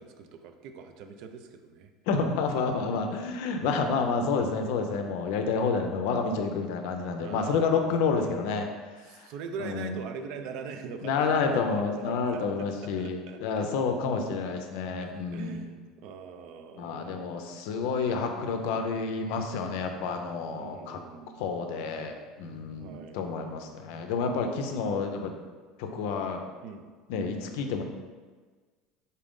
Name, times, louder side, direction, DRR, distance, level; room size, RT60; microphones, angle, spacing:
voice 1, 0.0-1.9 7.2-7.9 9.0-13.7 15.0-17.4 20.6-21.5 22.8-23.2 26.6-26.9, right 6 dB, 65° right, 7 dB, 0.4 m, -43 dB
voice 2, 2.1-8.7 9.0-9.3 9.6-10.0 11.0-15.7 16.8-21.0 21.4-25.4 25.8-26.4 27.1-27.8, left 4 dB, 75° left, 5 dB, 0.4 m, -29 dB
4.0 x 2.5 x 3.6 m, 1.4 s
supercardioid pair, 90°, 0 cm